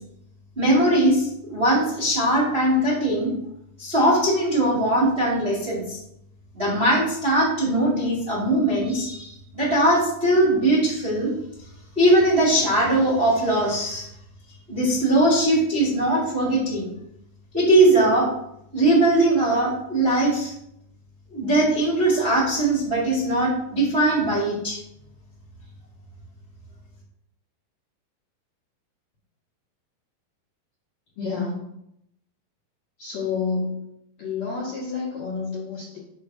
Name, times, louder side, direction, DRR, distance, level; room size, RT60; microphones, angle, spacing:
voice 1, 0.5-3.3 3.8-6.0 6.5-11.3 11.9-14.1 14.7-16.9 17.5-18.3 18.7-20.5 21.3-24.8, right 1 dB, 25° right, -8 dB, 1.4 m, -20 dB
voice 2, 31.2-31.7 33.0-33.8 34.2-36.0, left 4 dB, 60° left, -7 dB, 2.0 m, -29 dB
5.0 x 4.5 x 5.9 m, 0.78 s
omnidirectional pair, 4.7 m